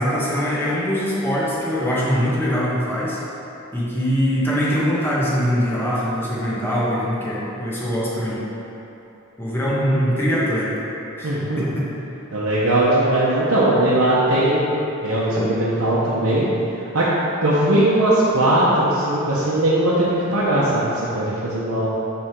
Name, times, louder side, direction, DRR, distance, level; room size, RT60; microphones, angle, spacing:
voice 1, 0.0-3.2 3.7-8.4 9.4-10.7 11.2-11.9 15.4-15.5, equal, 10° left, -8 dB, 1.3 m, -22 dB
voice 2, 11.2-11.7 12.3-16.5 16.8-17.1 17.4-21.9, right 1 dB, 80° right, -9 dB, 0.9 m, -19 dB
6.3 x 3.5 x 6.0 m, 3.0 s
head